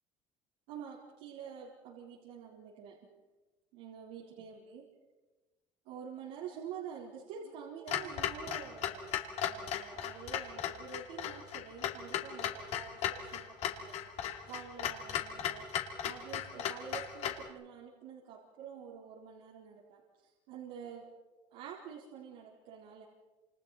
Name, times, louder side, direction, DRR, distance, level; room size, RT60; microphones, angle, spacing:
voice 1, 0.7-3.0 3.7-4.8 5.8-9.1 9.4-14.1 14.4-15.7 16.0-21.0 21.5-23.0, right 7 dB, 85° right, -4 dB, 4.2 m, -47 dB
Clock, 7.9-17.5, left 10 dB, 60° left, 2.6 m, -37 dB
29.0 x 28.0 x 4.3 m, 1.2 s
cardioid pair, 150°, 13 cm